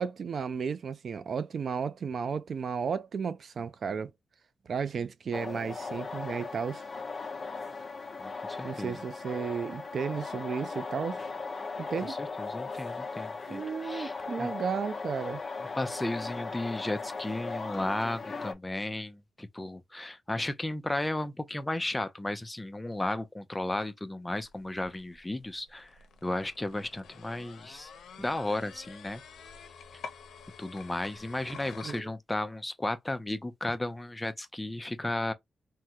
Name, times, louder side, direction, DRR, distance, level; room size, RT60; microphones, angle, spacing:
voice 1, 0.0-4.1 4.7-6.8 8.6-11.2 11.9-12.2 13.5-15.4 31.8-32.1, right 6 dB, 55° right, 0.4 m, -33 dB
sound 1, 5.3-18.5, left 4 dB, 35° left, 0.8 m, -38 dB
voice 2, 8.2-9.0 12.1-14.1 14.4-14.5 15.8-25.9 26.2-27.9 28.2-29.2 29.9-30.0 30.6-35.3, left 1 dB, 10° left, 0.4 m, -34 dB
sound 2, 24.3-32.0, left 6 dB, 85° left, 0.6 m, -49 dB
3.6 x 2.1 x 2.8 m
wide cardioid pair, 145°, 0 cm